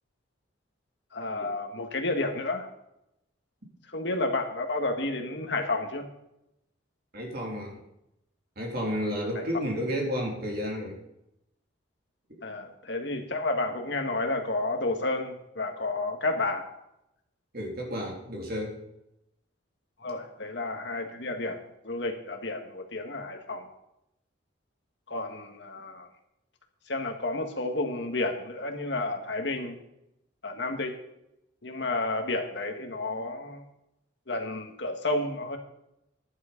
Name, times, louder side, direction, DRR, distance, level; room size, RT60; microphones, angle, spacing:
voice 1, 1.1-2.7 3.9-6.1 9.4-9.5 12.4-16.7 20.0-21.6 21.8-23.7 25.1-26.1 26.9-29.8 30.4-31.0 31.6-33.6 34.3-35.6, left 2 dB, 60° left, 4 dB, 1.8 m, -31 dB
voice 2, 7.1-7.8 8.5-11.0 12.3-12.4 17.5-18.8, equal, 50° right, 0 dB, 3.4 m, -32 dB
11.0 x 11.0 x 5.2 m, 0.84 s
head